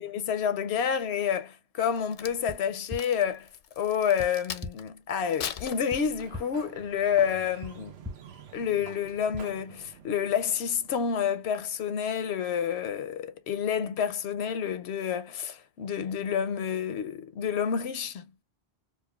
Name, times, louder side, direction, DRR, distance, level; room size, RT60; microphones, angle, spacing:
voice 1, 0.0-3.5 3.8-7.9 8.5-18.4, left 8 dB, 80° left, 0.8 m, -29 dB
Crack, 1.8-4.9 5.3-6.5 7.0-7.3, left 8 dB, 60° left, 0.6 m, -40 dB
sound 1, 2.5-2.6 2.9-3.0 4.2-4.3 4.6-4.7 5.9-6.0 6.3-6.4 7.6-7.7 8.0-8.1 9.3-9.4, left 2 dB, 20° right, 0.7 m, -37 dB
Sliding door, 5.8-11.4, right 7 dB, 75° right, 0.9 m, -50 dB
4.2 x 2.4 x 2.3 m
omnidirectional pair, 1.1 m